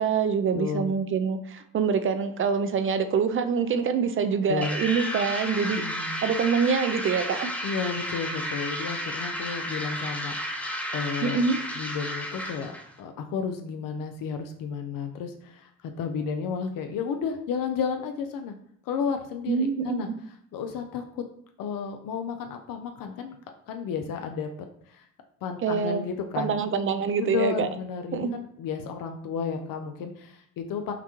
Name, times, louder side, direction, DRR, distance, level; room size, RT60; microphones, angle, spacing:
voice 1, 0.0-5.8 6.2-7.6 11.2-11.6 19.5-20.2 25.6-26.0 26.4-27.7 28.1-28.4, right 6 dB, 35° right, 10 dB, 0.5 m, -25 dB
voice 2, 0.5-0.9 4.5-4.8 5.6-6.2 7.6-11.4 11.7-12.7 13.0-18.5 18.8-20.1 20.5-21.2 21.6-23.4 23.7-25.1 25.4-26.6 27.2-30.9, left 6 dB, 65° left, 5 dB, 0.6 m, -32 dB
sound 1, 4.6-12.9, equal, 5° left, 0.6 m, -32 dB
5.8 x 2.3 x 3.0 m, 0.66 s
supercardioid pair, 80°, 36 cm